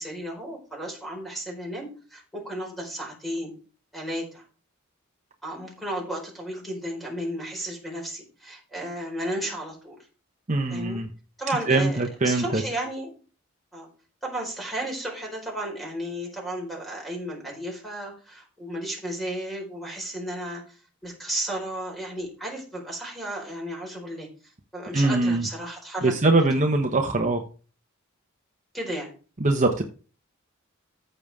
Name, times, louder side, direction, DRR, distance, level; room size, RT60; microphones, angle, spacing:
voice 1, 0.0-3.5 3.9-4.4 5.4-10.0 10.7-11.0 11.4-13.1 13.7-13.9 14.2-20.8 21.0-24.3 24.7-26.4 28.7-29.1, right 1 dB, ahead, -1 dB, 4.7 m, -33 dB
voice 2, 10.5-11.1 11.7-12.6 24.9-25.5 26.0-27.4 29.4-29.8, right 2 dB, 35° right, 4 dB, 1.0 m, -22 dB
14.5 x 6.7 x 3.6 m, 0.38 s
head